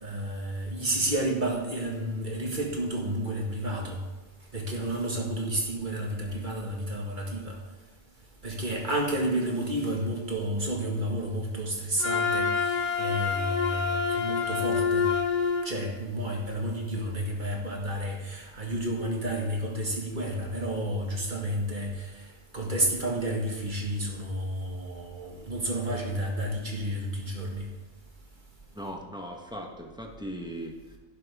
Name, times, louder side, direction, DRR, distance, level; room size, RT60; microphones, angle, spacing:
voice 1, 0.0-4.0 4.5-7.6 8.4-15.1 15.6-22.1 22.5-27.7, right 1 dB, 40° right, 0 dB, 1.8 m, -31 dB
Wind instrument woodwind instrument, 12.0-15.7, left 6 dB, 40° left, 0.9 m, -27 dB
voice 2, 28.7-31.0, equal, 5° right, 1 dB, 1.2 m, -39 dB
11.0 x 11.0 x 3.6 m, 1.3 s
omnidirectional pair, 1.3 m